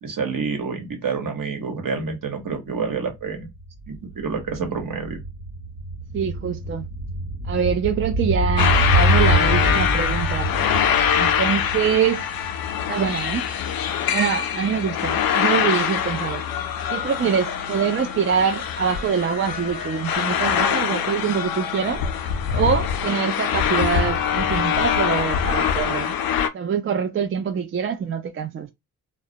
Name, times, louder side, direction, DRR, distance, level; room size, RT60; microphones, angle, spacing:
voice 1, 0.0-3.5 3.9-5.2, right 5 dB, 60° right, 1.0 m, -28 dB
sound 1, 2.5-2.6 2.8-13.2 13.5-13.6, right 1 dB, 85° right, 1.0 m, -25 dB
voice 2, 6.1-6.9 7.4-10.5 11.1-12.3 12.9-13.5 14.1-16.4 16.9-22.0 22.5-26.2 26.5-28.7, right 7 dB, 35° right, 0.4 m, -24 dB
sound 2, 8.6-26.5, left 8 dB, 65° left, 0.5 m, -24 dB
2.2 x 2.1 x 2.7 m
cardioid pair, 55°, 37 cm